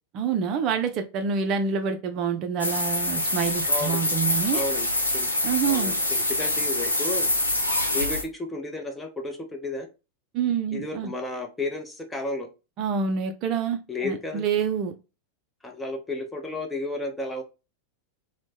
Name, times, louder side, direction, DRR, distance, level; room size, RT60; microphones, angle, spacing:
voice 1, 0.1-4.6 5.4-5.9 10.3-11.1 12.8-14.9, right 6 dB, 40° right, 7 dB, 0.4 m, -27 dB
sound 1, 2.6-8.2, left 1 dB, 85° left, 0.6 m, -25 dB
voice 2, 3.7-4.1 4.5-4.9 5.1-5.3 5.7-7.3 7.9-9.9 10.7-12.5 13.9-14.4 15.6-17.4, left 2 dB, 10° left, 4 dB, 0.6 m, -32 dB
3.0 x 2.0 x 3.2 m, 0.28 s
figure-of-eight pair, 90°, 0 cm